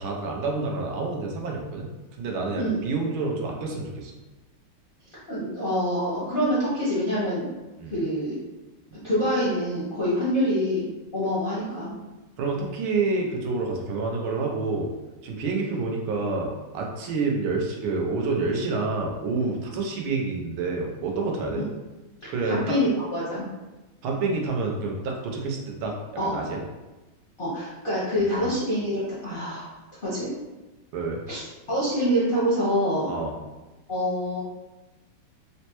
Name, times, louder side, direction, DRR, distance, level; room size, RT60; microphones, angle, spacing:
voice 1, 0.0-1.9 2.2-4.1 7.8-8.0 12.4-14.9 15.2-21.6 22.3-22.8 24.0-25.9 26.2-26.6 28.2-28.5 30.9-31.2 33.1-33.3, right 3 dB, 85° right, 0 dB, 1.4 m, -28 dB
voice 2, 5.3-7.5 7.9-8.4 9.0-10.9 11.1-11.9 22.4-23.5 26.2-26.3 27.4-29.7 30.0-30.3 31.3-33.1 33.9-34.4, equal, 55° left, -10 dB, 0.5 m, -26 dB
4.1 x 2.1 x 2.8 m, 1.1 s
omnidirectional pair, 2.2 m